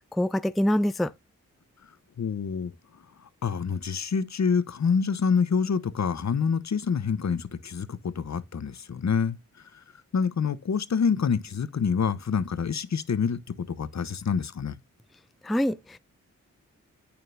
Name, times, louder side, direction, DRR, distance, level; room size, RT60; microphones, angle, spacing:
voice 1, 0.1-1.1 15.4-16.0, equal, ahead, 0.4 m, -25 dB
voice 2, 2.2-2.7 3.4-9.4 10.1-14.7, left 6 dB, 55° left, 0.9 m, -27 dB
8.8 x 6.9 x 2.6 m
cardioid pair, 45°, 34 cm